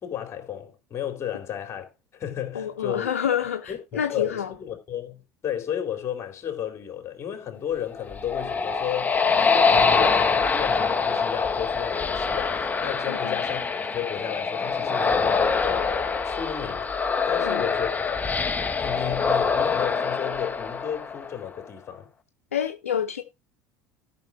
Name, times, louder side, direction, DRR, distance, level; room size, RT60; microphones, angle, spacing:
voice 1, 0.0-3.1 3.7-16.9 17.3-18.4 18.8-22.1, left 10 dB, 40° left, 3.4 m, -33 dB
voice 2, 2.5-4.5 9.7-9.9 13.1-13.4 17.4-17.6 22.5-23.2, left 9 dB, 90° left, 0.8 m, -28 dB
sound 1, 7.9-21.5, left 5 dB, 20° left, 1.3 m, -24 dB
13.5 x 6.0 x 3.9 m
hypercardioid pair, 75°, 7 cm